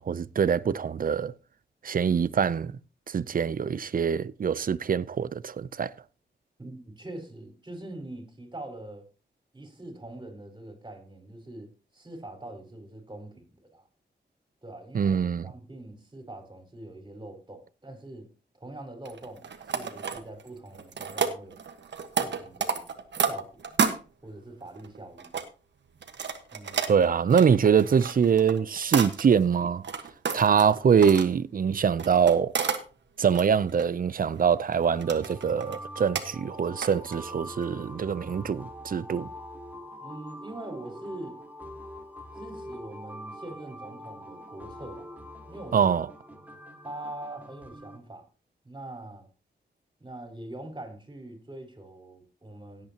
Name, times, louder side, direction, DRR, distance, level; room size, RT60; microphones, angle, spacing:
voice 1, 0.0-1.3 1.8-2.7 3.1-5.9 14.9-15.4 26.9-29.8 30.3-32.5 33.2-39.3 45.7-46.1, right 7 dB, 50° right, 0.6 m, -24 dB
voice 2, 6.6-9.0 9.5-11.7 11.9-13.9 14.6-18.3 18.5-21.6 22.2-22.9 23.2-23.6 24.2-25.3 26.5-26.9 40.0-41.4 42.4-45.1 45.5-46.0 46.3-46.4 46.8-48.3 48.6-49.3 50.0-52.9, right 1 dB, 25° right, 4.5 m, -43 dB
sound 1, 19.1-20.5 20.7-24.0 24.7-25.4 26.0-29.4 29.8-31.3 32.0-32.8 33.2-33.9 34.4-34.7 35.0-35.8 36.2-36.3 36.8-37.3 37.6-37.7, right 6 dB, 75° right, 1.4 m, -31 dB
sound 2, 34.8-48.0, equal, 10° right, 2.3 m, -44 dB
17.0 x 8.6 x 2.9 m
cardioid pair, 80°, 18 cm